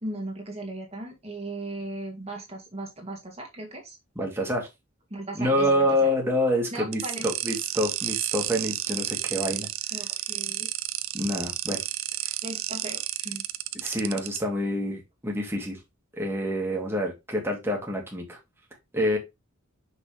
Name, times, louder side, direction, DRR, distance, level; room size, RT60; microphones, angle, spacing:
voice 1, 0.0-4.0 5.1-5.9 6.7-7.2 9.9-10.7 12.4-13.4, right 2 dB, 30° right, 1 dB, 1.8 m, -37 dB
voice 2, 4.2-4.7 5.3-9.7 11.1-11.8 12.2-12.3 13.7-15.8 16.2-18.4 18.9-19.2, equal, 10° right, -1 dB, 2.0 m, -27 dB
sound 1, 6.9-14.4, right 14 dB, 75° right, 0.6 m, -31 dB
6.0 x 5.8 x 3.3 m, 0.21 s
head